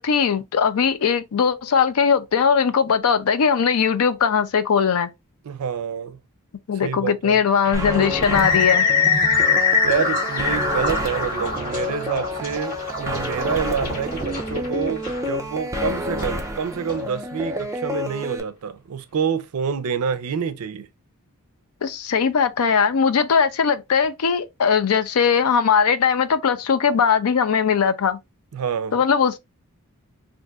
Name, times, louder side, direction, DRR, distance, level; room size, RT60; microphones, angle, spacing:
voice 1, 0.0-5.1 6.7-8.9 21.8-28.2 28.9-29.4, left 6 dB, 75° left, 0.4 m, -20 dB
voice 2, 5.4-6.2 6.7-7.4 9.8-20.9 28.5-29.0, right 6 dB, 80° right, 0.4 m, -27 dB
sound 1, 7.6-17.0, left 5 dB, 40° left, 1.6 m, -24 dB
sound 2, 7.7-18.4, left 1 dB, 15° right, 0.3 m, -29 dB
2.5 x 2.3 x 3.7 m
head